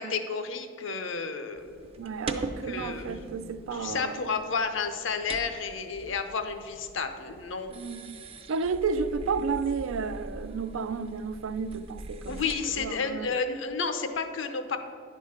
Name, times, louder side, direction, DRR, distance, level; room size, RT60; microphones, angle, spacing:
voice 1, 0.0-1.9 2.4-3.3 3.7-7.7 12.3-14.8, left 5 dB, 70° left, 0.7 m, -32 dB
sound 1, 1.6-13.0, right 2 dB, 30° right, 0.5 m, -42 dB
voice 2, 2.0-4.2 7.7-8.2 8.5-12.4 12.8-13.3, right 5 dB, 85° right, 0.4 m, -32 dB
10.5 x 3.8 x 6.4 m
head